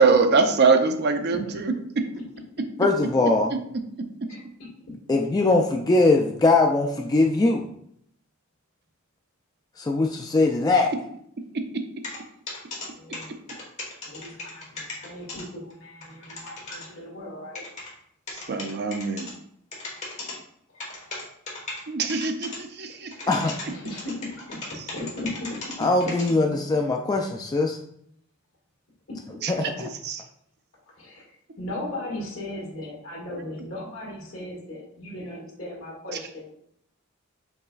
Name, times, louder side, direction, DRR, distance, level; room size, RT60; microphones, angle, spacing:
voice 1, 0.0-2.1 11.5-11.8 18.3-19.3 21.9-23.2 24.8-24.9 29.4-30.2 36.1-36.2, right 4 dB, 50° right, 7 dB, 0.5 m, -23 dB
voice 2, 2.8-3.5 5.1-7.7 9.8-10.9 23.3-23.5 25.8-27.8 29.5-29.9, left 2 dB, 20° left, 2 dB, 0.3 m, -21 dB
sound 1, 12.0-12.2 12.5-12.9 13.1-15.4 15.7-15.8 16.0-16.9 17.5-17.9 18.3-19.3 19.7-20.3 20.8-21.8 22.1-22.6 22.9-26.3, left 3 dB, 35° left, 1.3 m, -36 dB
voice 3, 12.9-13.4 14.0-17.6 20.7-20.9 23.4-25.6 29.1-29.2 31.0-31.3 31.6-36.5, left 1 dB, 75° left, -3 dB, 1.8 m, -37 dB
5.4 x 4.0 x 2.3 m, 0.70 s
head